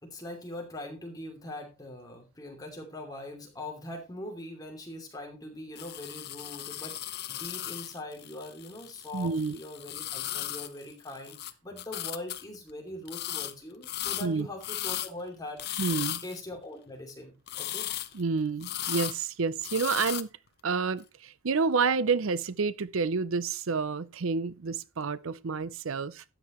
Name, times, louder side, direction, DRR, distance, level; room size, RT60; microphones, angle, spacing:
voice 1, 0.0-7.0 7.3-15.8 16.2-17.9, left 1 dB, 15° left, 2.8 m, -42 dB
sound 1, 5.8-11.5 11.8-12.4 13.1-13.5 13.8-15.1 15.6-16.4 17.5-18.2 18.6-19.2 19.6-20.2, left 12 dB, 50° left, 0.7 m, -36 dB
voice 2, 9.1-9.6 14.2-14.5 15.8-16.2 18.1-20.3 20.6-26.2, right 5 dB, 75° right, 0.6 m, -29 dB
13.0 x 9.1 x 3.1 m
head